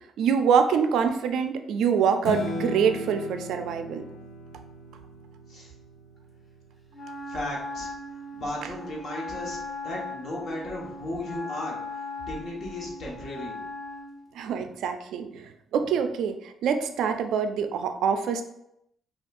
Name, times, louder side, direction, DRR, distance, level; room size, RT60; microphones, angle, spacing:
voice 1, 0.2-4.0 14.4-18.4, right 6 dB, 80° right, 7 dB, 0.3 m, -25 dB
Strum, 2.2-8.5, left 2 dB, 90° left, 0.7 m, -38 dB
Wind instrument woodwind instrument, 6.9-14.2, left 2 dB, 20° left, 1.1 m, -38 dB
voice 2, 7.3-7.9 8.3-9.6 9.8-11.8 12.3-13.5, left 1 dB, 55° left, -3 dB, 1.2 m, -35 dB
5.0 x 2.3 x 2.5 m, 0.78 s
cardioid pair, 90°, 0 cm